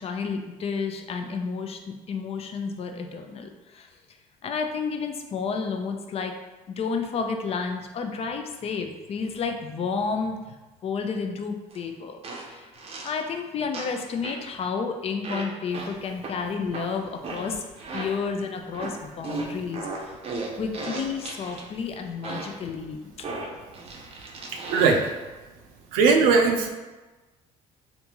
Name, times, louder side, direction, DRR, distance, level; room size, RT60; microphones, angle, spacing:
voice 1, 0.0-3.9 4.4-6.3 6.7-10.6 10.8-12.7 13.0-17.7 17.9-20.2 20.6-23.1, left 5 dB, 40° left, 4 dB, 0.5 m, -31 dB
sound 1, 11.7-11.8 12.2-13.2 13.7-14.5 15.2-18.3 18.7-21.7 22.2-22.7 23.2-25.2, right 3 dB, 40° right, 0.6 m, -36 dB
voice 2, 24.5-25.1 25.9-26.7, right 4 dB, 90° right, 4 dB, 0.5 m, -20 dB
3.4 x 2.6 x 2.9 m, 1.2 s
supercardioid pair, 85°, 15 cm